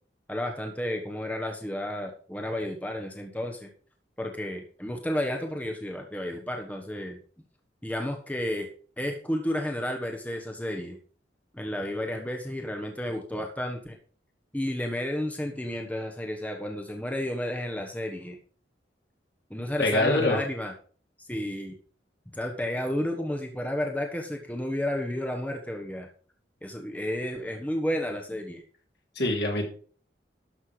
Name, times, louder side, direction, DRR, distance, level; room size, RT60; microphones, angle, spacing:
voice 1, 0.3-3.7 4.2-7.2 7.8-8.7 9.0-11.0 11.5-14.0 14.5-18.4 19.5-20.7 21.3-21.7 22.3-26.1 26.6-28.6, left 1 dB, 10° left, 2 dB, 1.2 m, -32 dB
voice 2, 19.8-20.4 29.2-29.7, left 2 dB, 65° left, 1 dB, 3.0 m, -24 dB
12.0 x 6.6 x 4.9 m, 0.43 s
head